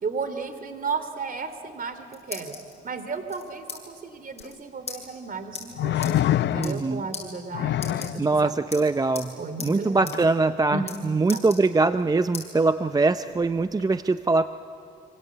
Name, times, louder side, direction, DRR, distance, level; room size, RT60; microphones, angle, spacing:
voice 1, 0.0-2.5 2.8-6.2 6.5-8.5 9.4-10.1 10.7-11.0 11.3-11.4, right 4 dB, 45° right, 9 dB, 2.8 m, -34 dB
sound 1, 1.8-2.7 3.3-3.8 4.1-4.2 4.3-4.5 4.9-5.0 5.5-5.6 6.0-6.1 6.5-6.9 7.1-7.2 7.7-8.4 8.7-9.3 9.6-9.7 10.1-10.2 10.5-11.0 11.3-12.0 12.3-12.5 13.0-13.8, left 5 dB, 30° left, 7.8 m, -38 dB
sound 2, 4.4-4.5 5.8-7.0 7.5-8.2 10.1-10.3, left 12 dB, 65° left, 0.7 m, -25 dB
voice 2, 6.6-7.1 8.2-14.5, right 3 dB, 20° right, 11 dB, 0.6 m, -23 dB
27.0 x 26.0 x 8.4 m, 2.7 s
cardioid pair, 90°, 20 cm